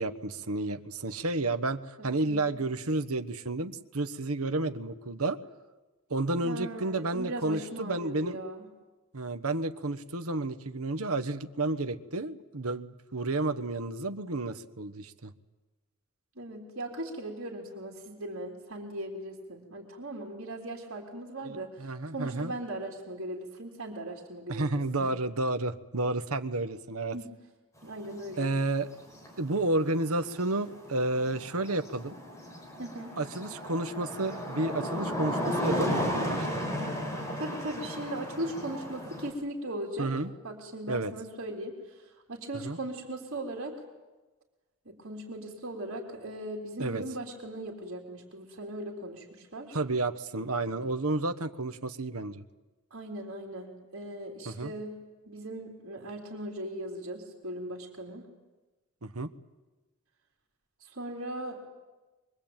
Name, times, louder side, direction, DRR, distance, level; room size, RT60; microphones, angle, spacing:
voice 1, 0.0-5.4 6.1-8.4 9.1-15.3 21.4-22.5 24.5-27.2 28.4-28.9 29.4-32.2 33.2-36.7 40.0-40.3 40.9-41.1 42.5-42.8 46.8-47.0 49.7-52.4 54.4-54.7 59.0-59.3, right 2 dB, 75° right, 10 dB, 1.3 m, -31 dB
voice 2, 2.0-2.6 6.4-8.7 16.4-24.7 25.0-25.1 27.1-27.3 27.8-28.5 32.8-33.1 37.4-40.1 40.4-41.8 42.3-43.7 44.9-49.8 52.9-55.0 55.3-58.3 60.9-61.7, right 1 dB, 60° right, -2 dB, 3.7 m, -38 dB
sound 1, 28.0-39.3, equal, 15° left, 5.5 m, -34 dB
24.0 x 23.5 x 9.0 m, 1.2 s
head